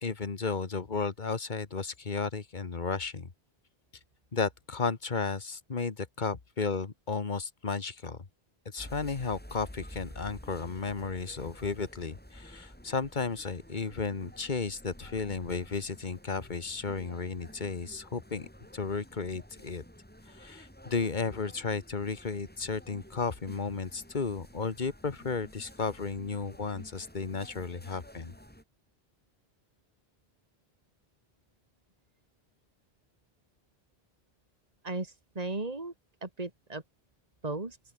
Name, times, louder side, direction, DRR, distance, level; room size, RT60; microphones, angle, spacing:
voice 1, 0.0-3.3 4.3-8.2 8.6-18.5 18.7-19.8 20.3-28.3, left 4 dB, 50° left, 1.6 m, -34 dB
sound 1, 8.8-28.6, equal, 10° left, 6.2 m, -51 dB
voice 2, 34.8-35.9 36.2-36.8 37.4-37.8, right 2 dB, 40° right, 2.8 m, -36 dB
open air
omnidirectional pair, 1.0 m